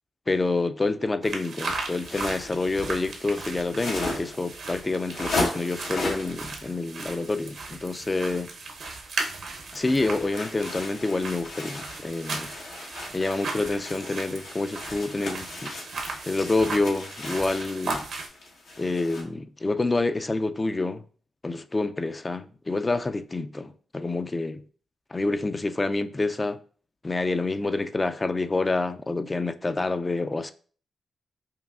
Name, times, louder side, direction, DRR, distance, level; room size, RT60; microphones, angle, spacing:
voice 1, 0.3-8.5 9.7-12.5 13.1-15.7 16.2-18.0 18.8-21.0 21.4-24.6 25.1-26.6 27.0-30.5, left 3 dB, 30° left, 0.3 m, -27 dB
sound 1, 1.2-18.3, right 3 dB, 75° right, 0.8 m, -37 dB
sound 2, 1.8-6.4 9.7-19.2, left 2 dB, 85° left, 1.1 m, -36 dB
5.5 x 2.3 x 2.4 m
supercardioid pair, 55°, 0 cm